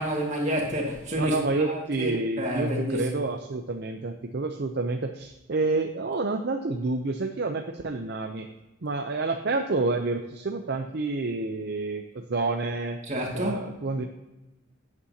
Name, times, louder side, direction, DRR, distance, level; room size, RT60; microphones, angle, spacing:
voice 1, 0.0-3.1 13.1-13.6, equal, 35° right, 2.1 m, -29 dB
voice 2, 1.2-8.5 8.8-13.0 13.3-14.0, right 3 dB, 50° right, 0.6 m, -29 dB
11.0 x 8.6 x 2.8 m
head